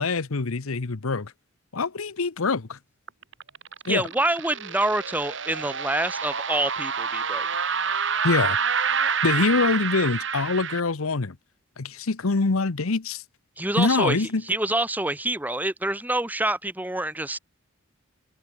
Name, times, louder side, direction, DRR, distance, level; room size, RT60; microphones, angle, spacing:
voice 1, 0.0-1.3 1.7-2.8 3.8-4.0 8.2-8.6 9.2-11.4 11.8-13.2 13.8-14.4, left 3 dB, 90° left, 0.9 m, -24 dB
sound 1, 3.1-10.8, right 6 dB, 60° right, 5.3 m, -28 dB
voice 2, 3.9-7.5 13.6-17.4, right 1 dB, 10° right, 1.3 m, -27 dB
head